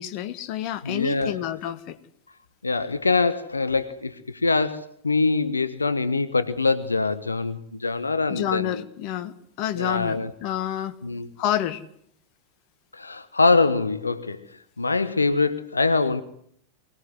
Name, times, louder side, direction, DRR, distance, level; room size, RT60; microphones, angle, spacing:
voice 1, 0.0-2.0 8.3-10.9 11.4-11.8, left 11 dB, 45° left, 10 dB, 1.8 m, -29 dB
voice 2, 0.8-1.4 2.6-8.8 9.8-10.3 11.0-11.3 12.9-16.2, left 3 dB, 80° left, 12 dB, 1.2 m, -24 dB
24.0 x 18.5 x 9.5 m, 0.67 s
figure-of-eight pair, 90°, 0 cm